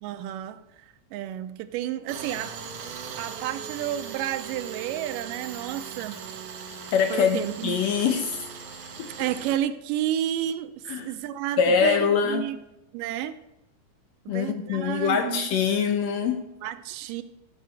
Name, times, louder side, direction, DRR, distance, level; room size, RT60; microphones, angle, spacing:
voice 1, 0.0-2.6 3.2-6.2 7.1-7.8 9.2-12.6 12.9-13.4 14.3-15.4 16.6-17.2, right 11 dB, 90° right, 11 dB, 2.3 m, -31 dB
Tools, 2.1-9.6, right 6 dB, 70° right, 2.7 m, -39 dB
voice 2, 6.9-8.4 9.0-9.1 10.9-11.1 11.6-12.4 14.3-16.5, left 6 dB, 70° left, 6 dB, 1.7 m, -24 dB
13.5 x 4.6 x 8.1 m, 0.89 s
omnidirectional pair, 3.8 m